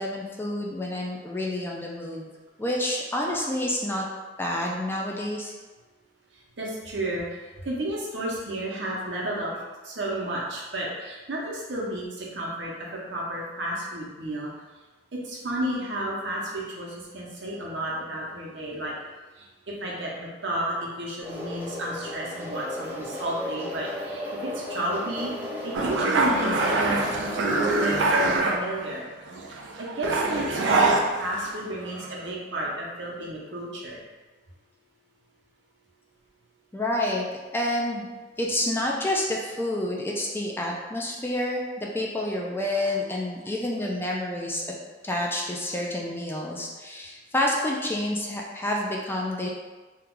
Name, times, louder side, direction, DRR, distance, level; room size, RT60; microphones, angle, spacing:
voice 1, 0.0-2.3 2.6-4.1 4.4-5.5 36.7-37.3 37.5-38.1 38.4-44.7 45.0-49.5, left 1 dB, 10° left, -2 dB, 0.4 m, -28 dB
voice 2, 6.6-9.6 9.8-14.5 15.1-18.9 19.4-25.3 25.6-29.1 29.8-34.0, right 1 dB, 70° right, -4 dB, 0.8 m, -32 dB
sound 1, 21.2-28.4, left 1 dB, 10° right, 0.7 m, -35 dB
sound 2, 25.7-29.0 29.3-31.6 31.9-32.3, right 2 dB, 90° right, 0.4 m, -24 dB
2.9 x 2.3 x 3.7 m, 1.3 s
head